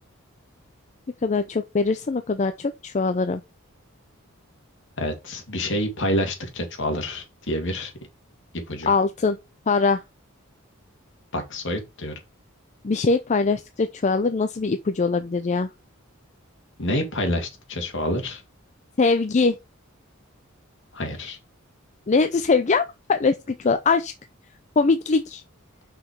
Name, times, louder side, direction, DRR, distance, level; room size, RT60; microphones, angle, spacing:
voice 1, 1.2-3.4 8.9-9.4 9.7-10.0 12.8-15.7 19.0-19.6 22.1-22.8 23.1-24.1 24.8-25.4, left 4 dB, 35° left, 0.5 m, -22 dB
voice 2, 5.0-7.9 8.7-8.9 11.3-12.1 16.8-18.4 20.9-21.4, left 1 dB, 60° left, 2.1 m, -27 dB
5.8 x 5.3 x 4.6 m
head